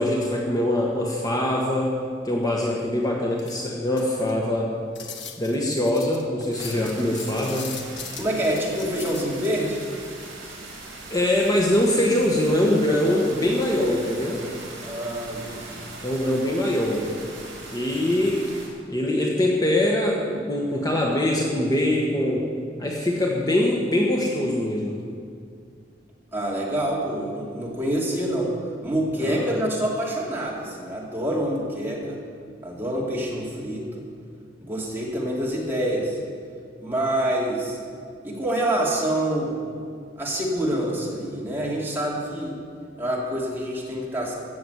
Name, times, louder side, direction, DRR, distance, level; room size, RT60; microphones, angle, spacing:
voice 1, 0.0-2.0 2.2-4.7 5.4-7.8 11.1-14.4 16.0-17.1 17.7-18.5 18.9-22.5 22.8-24.9 29.2-29.6, left 1 dB, 20° left, -1 dB, 1.2 m, -23 dB
sound 1, 3.3-4.4 4.9-9.5, left 7 dB, 65° left, 1.4 m, -39 dB
sound 2, 6.5-18.7, right 2 dB, 65° right, 3.9 m, -40 dB
voice 2, 8.2-9.8 14.8-15.8 26.3-28.5 28.8-32.2 32.6-34.0 34.6-36.2 36.8-37.8 38.2-39.6 40.2-42.6 43.0-44.3, right 1 dB, 10° right, -4 dB, 2.7 m, -26 dB
15.5 x 7.1 x 7.9 m, 2.3 s
head